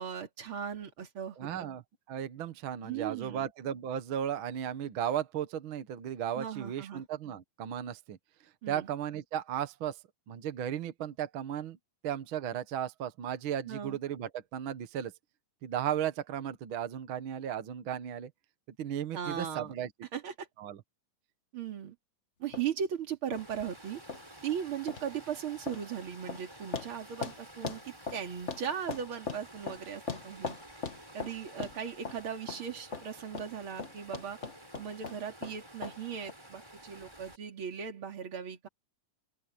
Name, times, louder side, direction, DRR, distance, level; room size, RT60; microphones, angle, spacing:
voice 1, 0.0-1.7 2.8-3.5 6.4-7.0 8.6-8.9 13.7-14.0 19.1-19.7 20.1-20.5 21.5-22.0 22.4-24.0 24.4-30.6 31.1-34.4 34.8-38.7, right 8 dB, 40° right, 3.2 m, -38 dB
voice 2, 1.4-1.8 2.1-8.2 8.7-10.0 10.3-11.8 12.0-15.1 15.6-18.3 18.8-19.9 20.6-20.8, right 9 dB, 60° right, 1.4 m, -35 dB
sound 1, 22.5-22.6 23.3-23.4 24.1-24.2 24.9-25.1 25.7-25.8 26.3-26.4 26.7-26.9 27.2-27.4 27.6-28.6 28.9-29.8 30.1-31.3 31.6-31.8 32.0-32.2 32.5-32.6 32.9-33.1 33.3-33.5 33.8-35.5 35.8-36.0 36.3-36.4, left 5 dB, 50° left, 0.8 m, -38 dB
Water, 23.3-37.4, right 1 dB, 5° right, 5.9 m, -52 dB
open air
omnidirectional pair, 3.8 m